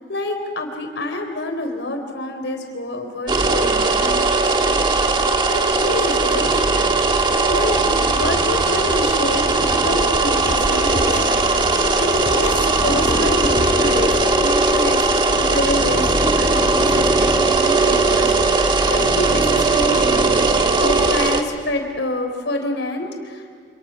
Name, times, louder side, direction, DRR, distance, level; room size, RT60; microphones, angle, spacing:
voice 1, 0.1-4.7 5.5-6.5 7.5-7.8 8.1-9.4 9.8-11.2 12.0-14.1 14.4-16.1 16.4-20.3 20.7-23.4, left 1 dB, 80° left, 4 dB, 4.0 m, -27 dB
sound 1, 3.3-21.4, right 3 dB, 25° right, 1.5 m, -18 dB
sound 2, 6.4-18.5, left 1 dB, 50° left, 1.3 m, -34 dB
sound 3, 10.5-13.7, left 1 dB, 35° left, 1.6 m, -34 dB
28.5 x 28.0 x 6.1 m, 2.1 s
head